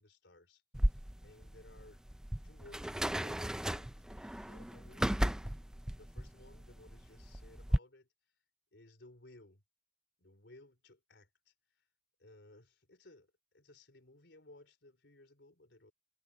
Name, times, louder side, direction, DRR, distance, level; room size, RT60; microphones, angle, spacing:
voice 1, 0.0-2.0 2.4-5.2 6.0-8.1 8.7-9.6 10.2-11.8 12.2-15.9, left 2 dB, 80° left, 3.7 m, -60 dB
sound 1, 0.7-7.8, equal, 5° right, 0.3 m, -35 dB
head